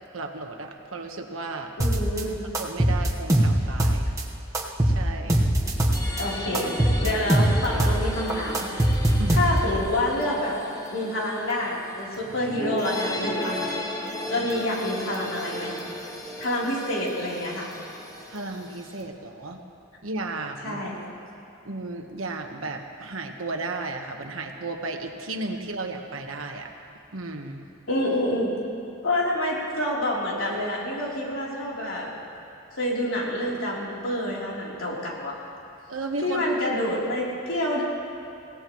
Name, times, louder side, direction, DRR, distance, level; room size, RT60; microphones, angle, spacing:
voice 1, 0.1-1.7 2.6-4.1 4.8-5.4 9.2-9.5 18.3-19.6 20.0-20.8 21.6-26.7 27.1-27.7 35.9-36.4, right 3 dB, 80° right, 4 dB, 1.3 m, -34 dB
voice 2, 1.8-2.3 6.2-6.7 7.0-8.7 9.3-10.6 10.9-13.7 14.3-15.8 16.4-17.7 20.6-21.1 27.9-28.5 29.0-32.1 32.8-35.3 36.2-37.8, left 1 dB, 80° left, -5 dB, 3.5 m, -27 dB
sound 1, 1.8-2.2 2.5-4.2 4.5-6.2 6.5-8.0 8.3-9.8, right 1 dB, 15° right, 1.2 m, -22 dB
sound 2, 5.6-19.0, left 1 dB, 15° left, 1.1 m, -36 dB
22.5 x 17.0 x 3.1 m, 2.7 s
head